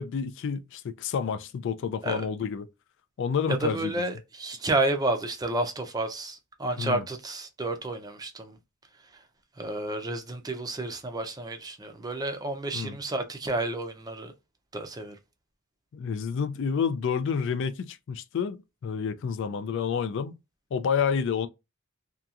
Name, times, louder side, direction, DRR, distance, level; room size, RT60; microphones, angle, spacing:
voice 1, 0.0-2.7 3.2-3.9 6.8-7.0 12.7-13.0 15.9-18.6 18.8-20.4 20.7-21.5, left 6 dB, 55° left, 0.3 m, -29 dB
voice 2, 3.5-8.6 9.6-14.3 14.7-15.2, right 2 dB, 15° right, 0.5 m, -30 dB
2.8 x 2.3 x 2.3 m
head